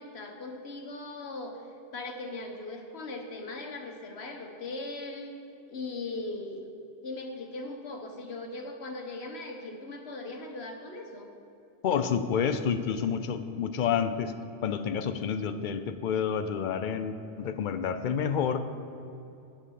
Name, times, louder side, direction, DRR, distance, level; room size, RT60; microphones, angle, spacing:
voice 1, 0.0-1.7 1.9-5.3 5.7-6.7 7.0-11.3, left 2 dB, 75° left, 3 dB, 1.3 m, -39 dB
voice 2, 11.8-14.3 14.6-18.6, left 7 dB, 55° left, 10 dB, 0.6 m, -29 dB
8.0 x 7.2 x 6.4 m, 2.7 s
omnidirectional pair, 1.1 m